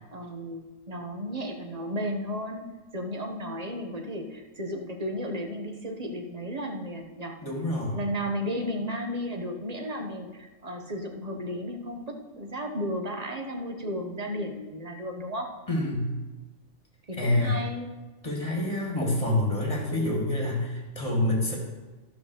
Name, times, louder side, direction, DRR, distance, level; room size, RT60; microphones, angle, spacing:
voice 1, 0.1-2.7 2.9-7.4 7.9-15.5 17.1-17.9, equal, 30° right, 3 dB, 1.1 m, -34 dB
voice 2, 7.4-8.0 15.7-16.1 17.1-17.6 18.2-21.6, left 1 dB, 25° left, -2 dB, 2.5 m, -27 dB
12.5 x 5.8 x 6.5 m, 1.2 s
omnidirectional pair, 1.4 m